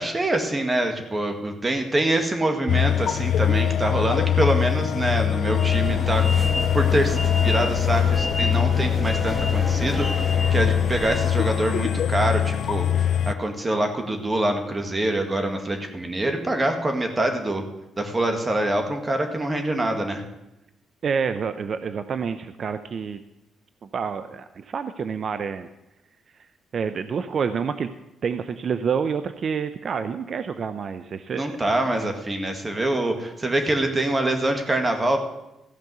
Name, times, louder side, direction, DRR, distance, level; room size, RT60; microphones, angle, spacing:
voice 1, 0.0-6.4 6.7-17.6 18.0-20.2 31.3-35.2, right 1 dB, 25° right, 5 dB, 2.0 m, -25 dB
sound 1, 2.7-13.3, left 10 dB, 65° left, 0.4 m, -22 dB
sound 2, 5.5-11.4, equal, 5° right, 1.6 m, -30 dB
voice 2, 21.0-23.2 23.9-25.7 26.7-27.9 28.2-31.4, right 6 dB, 50° right, 11 dB, 0.6 m, -28 dB
15.0 x 5.3 x 8.0 m, 0.92 s
cardioid pair, 90°, 0 cm